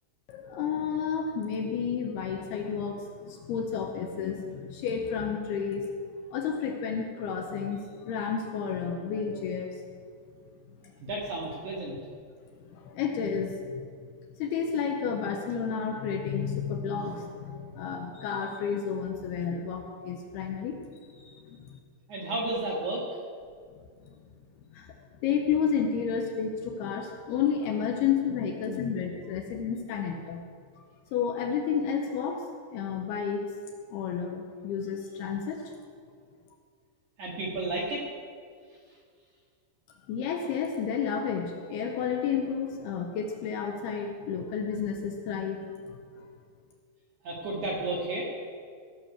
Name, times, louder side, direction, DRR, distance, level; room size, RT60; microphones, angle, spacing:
voice 1, 0.3-5.9 6.3-9.8 12.7-13.9 14.4-20.8 21.1-21.8 24.1-24.2 24.7-24.9 25.2-30.5 31.1-33.4 33.9-35.7 40.1-45.8 46.2-46.3, left 7 dB, 75° left, 2 dB, 2.4 m, -31 dB
voice 2, 11.0-12.0 22.1-23.0 37.2-38.0 47.2-48.3, right 2 dB, 65° right, -3 dB, 2.1 m, -32 dB
16.5 x 5.9 x 6.5 m, 2.1 s
omnidirectional pair, 5.1 m